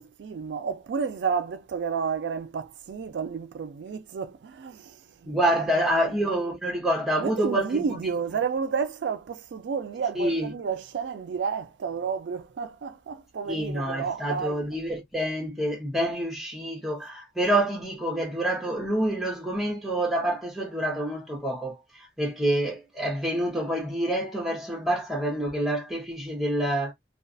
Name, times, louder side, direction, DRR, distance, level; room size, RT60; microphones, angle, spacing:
voice 1, 0.0-6.3 7.2-14.6, right 6 dB, 85° right, 0.4 m, -31 dB
voice 2, 5.3-7.9 10.1-10.5 13.5-26.9, right 1 dB, ahead, 0.7 m, -27 dB
2.3 x 2.3 x 2.4 m
head